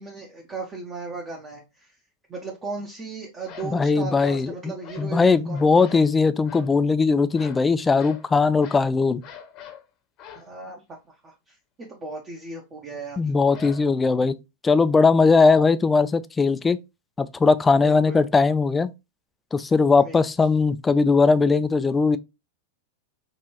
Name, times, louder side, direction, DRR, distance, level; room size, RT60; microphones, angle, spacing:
voice 1, 0.0-2.0 2.3-6.0 10.3-13.3 17.8-18.3 20.0-20.2, right 3 dB, 25° right, 0.8 m, -37 dB
sound 1, 3.4-3.8 4.1-4.5 4.8-5.1 5.5-6.1 6.4-6.7 7.3-7.7 8.0-8.3 8.6-8.9 9.2-9.8 10.2-10.5 13.5-14.1, left 7 dB, 40° left, 0.8 m, -43 dB
voice 2, 3.6-9.2 13.2-14.4 14.6-16.8 17.2-18.9 19.5-22.2, left 4 dB, 15° left, 0.3 m, -19 dB
5.2 x 2.5 x 2.9 m
figure-of-eight pair, 90°, 0 cm